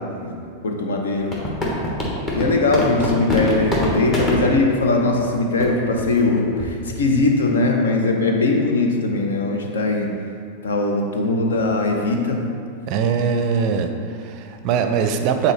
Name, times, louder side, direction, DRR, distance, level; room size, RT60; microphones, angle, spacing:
voice 1, 0.0-1.4 2.3-10.2 10.6-12.5, left 3 dB, 65° left, 2 dB, 0.8 m, -20 dB
sound 1, 1.3-4.4 5.2-5.3 5.6-5.7 6.0-6.2 6.6-6.8, left 1 dB, 25° left, 1.3 m, -23 dB
voice 2, 12.9-15.5, right 6 dB, 40° right, 6 dB, 0.5 m, -21 dB
8.7 x 4.2 x 3.2 m, 2.3 s
figure-of-eight pair, 90°, 0 cm